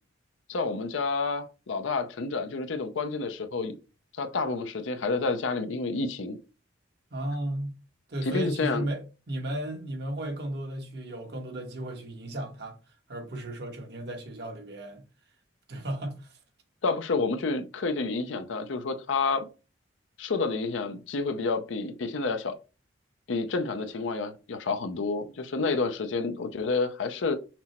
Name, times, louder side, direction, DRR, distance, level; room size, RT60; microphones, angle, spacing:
voice 1, 0.5-3.7 4.2-6.4 8.2-8.9 16.8-19.5 20.2-22.5 23.3-27.4, left 4 dB, 80° left, 0.5 m, -29 dB
voice 2, 7.1-7.8 8.1-9.0 9.3-12.8 13.1-15.0 15.7-16.3, right 1 dB, 55° right, 1.1 m, -34 dB
6.0 x 2.0 x 4.2 m
head